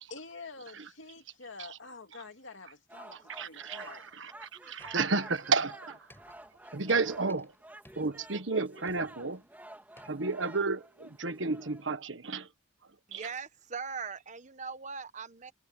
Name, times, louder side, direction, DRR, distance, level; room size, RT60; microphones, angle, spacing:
voice 1, 0.1-4.0, left 4 dB, 80° left, 2.5 m, -47 dB
sound 1, 2.9-11.8, right 1 dB, 10° right, 1.9 m, -51 dB
voice 2, 3.3-6.0 6.7-7.5 8.0-9.4 10.0-12.5 13.1-13.2, right 3 dB, 75° right, 1.4 m, -32 dB
sound 2, 4.8-5.6 5.9-7.6 7.8-8.5 8.9-9.4 10.0-10.3, left 1 dB, 10° left, 5.4 m, -58 dB
voice 3, 13.1-15.5, right 5 dB, 40° right, 1.1 m, -40 dB
head